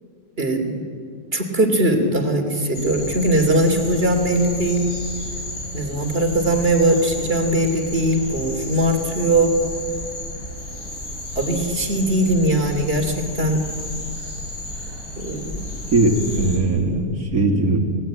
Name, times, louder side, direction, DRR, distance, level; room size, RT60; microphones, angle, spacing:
voice 1, 0.4-0.8 1.3-4.9 5.7-9.6 11.3-13.6 15.2-15.7, right 1 dB, 40° right, 4 dB, 3.1 m, -20 dB
sound 1, 2.7-16.6, left 1 dB, 85° left, 5.7 m, -32 dB
voice 2, 15.9-17.8, right 2 dB, 70° right, 0 dB, 3.0 m, -19 dB
28.5 x 19.0 x 9.1 m, 2.4 s
omnidirectional pair, 1.6 m